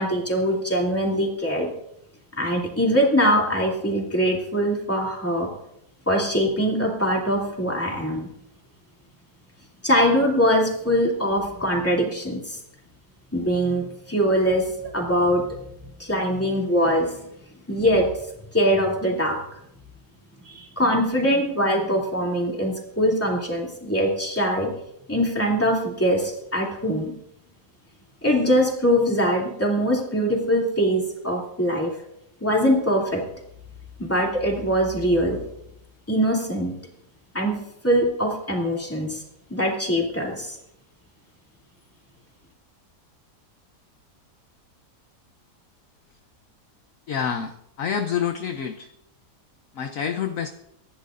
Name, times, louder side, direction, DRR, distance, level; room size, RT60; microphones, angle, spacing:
voice 1, 0.0-1.7 2.4-5.5 6.1-8.3 9.8-12.6 13.3-14.6 14.9-15.4 16.0-17.2 17.7-18.1 18.5-19.4 20.4-24.7 25.1-27.1 28.2-31.9 32.4-33.2 34.0-35.4 36.1-36.7 37.3-37.6 37.8-39.2 39.5-40.6, equal, 10° left, -1 dB, 2.7 m, -22 dB
voice 2, 47.1-48.9 49.7-50.5, left 7 dB, 60° left, 7 dB, 1.0 m, -27 dB
24.5 x 10.5 x 2.6 m, 0.77 s
omnidirectional pair, 1.7 m